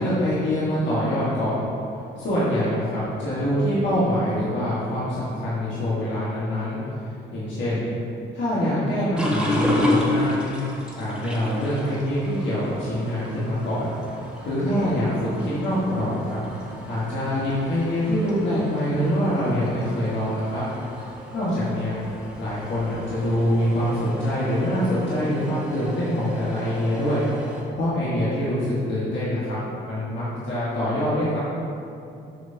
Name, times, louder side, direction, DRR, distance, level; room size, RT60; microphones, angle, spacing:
voice 1, 0.0-1.6 2.2-6.8 7.3-7.9 8.3-10.5 10.9-13.9 14.4-16.4 16.9-20.7 21.3-22.0 22.4-27.3 27.8-31.4, equal, 65° left, -9 dB, 1.5 m, -24 dB
sound 1, 9.2-27.6, left 1 dB, 5° right, 1.3 m, -32 dB
7.5 x 5.5 x 2.7 m, 2.6 s
cardioid pair, 90°, 20 cm